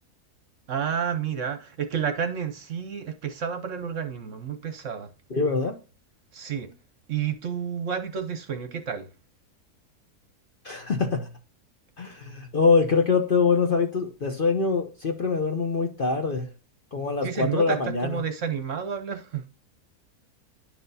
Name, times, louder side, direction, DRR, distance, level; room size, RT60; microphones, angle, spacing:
voice 1, 0.7-5.1 6.3-6.7 7.1-9.1 17.2-19.5, right 7 dB, 55° right, 1.0 m, -30 dB
voice 2, 5.3-5.7 10.6-11.2 12.0-16.5 16.9-18.2, left 4 dB, 45° left, 0.8 m, -24 dB
10.5 x 5.9 x 2.7 m
omnidirectional pair, 1.7 m